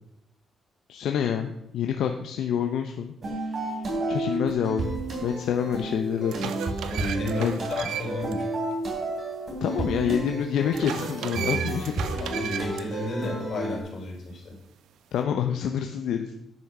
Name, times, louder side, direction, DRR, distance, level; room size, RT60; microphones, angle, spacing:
voice 1, 0.9-3.1 4.1-6.5 7.4-7.6 9.6-12.5 15.1-16.3, left 8 dB, 80° left, 5 dB, 0.8 m, -27 dB
sound 1, 3.2-13.8, right 2 dB, 45° right, 3.6 m, -32 dB
sound 2, 5.3-5.4 6.0-8.3 8.7-8.8 10.7-12.8, right 9 dB, 85° right, 0.7 m, -35 dB
voice 2, 6.8-8.4 12.2-14.5, left 2 dB, 55° left, -1 dB, 4.3 m, -32 dB
10.5 x 6.5 x 6.0 m, 0.81 s
cardioid pair, 95°, 0 cm